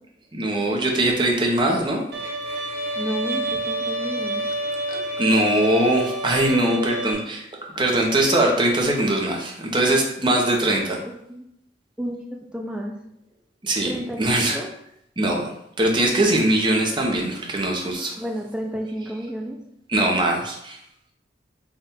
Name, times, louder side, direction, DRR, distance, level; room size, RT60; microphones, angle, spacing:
voice 1, 0.3-2.0 4.9-7.5 7.8-11.0 13.6-13.9 14.2-14.6 15.2-15.5 15.8-18.2 19.9-20.8, right 1 dB, 25° right, 0 dB, 0.7 m, -21 dB
Bowed string instrument, 2.1-7.1, right 1 dB, 65° right, 0.6 m, -28 dB
voice 2, 3.0-4.4 6.5-7.4 10.2-10.6 11.0-11.5 12.0-12.9 13.9-14.7 18.2-19.6, right 1 dB, 5° right, 1 dB, 0.4 m, -32 dB
3.6 x 2.4 x 4.2 m, 0.76 s
head